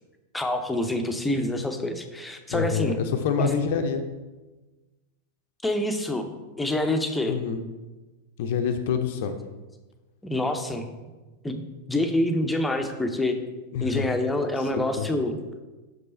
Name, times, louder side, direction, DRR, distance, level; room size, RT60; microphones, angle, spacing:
voice 1, 0.3-3.0 3.4-3.6 5.6-6.3 6.6-7.3 10.2-10.9 11.4-13.4 13.8-15.3, left 1 dB, 5° left, 6 dB, 0.7 m, -26 dB
voice 2, 2.5-4.0 7.3-7.6 8.4-9.4 13.7-14.1 14.6-14.7 15.0-15.1, left 7 dB, 50° left, 7 dB, 0.5 m, -26 dB
6.0 x 5.3 x 4.3 m, 1.2 s
figure-of-eight pair, 90°, 0 cm